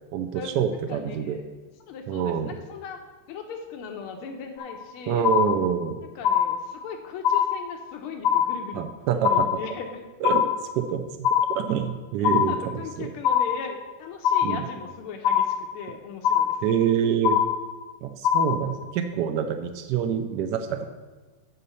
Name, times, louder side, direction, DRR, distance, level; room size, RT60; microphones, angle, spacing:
voice 1, 0.1-1.4 2.1-2.5 5.1-6.0 8.7-9.5 10.2-10.5 10.8-13.1 14.4-14.6 16.6-17.4 18.0-20.9, right 8 dB, 75° right, 7 dB, 1.0 m, -26 dB
voice 2, 0.9-1.4 1.9-3.0 3.3-5.3 6.1-8.9 9.1-10.0 12.2-16.6, left 5 dB, 85° left, 4 dB, 1.7 m, -38 dB
sound 1, 4.6-4.9 5.2-5.9 6.2-6.9 7.2-7.9 8.2-8.9 9.2-9.9 10.2-10.9 11.2-11.9 12.2-12.9 13.2-13.9 14.2-14.9 15.2-15.9 16.2-16.9 17.2-17.9 18.2-18.9, left 9 dB, 70° left, 1.1 m, -24 dB
8.4 x 5.3 x 6.8 m, 1.3 s
omnidirectional pair, 2.3 m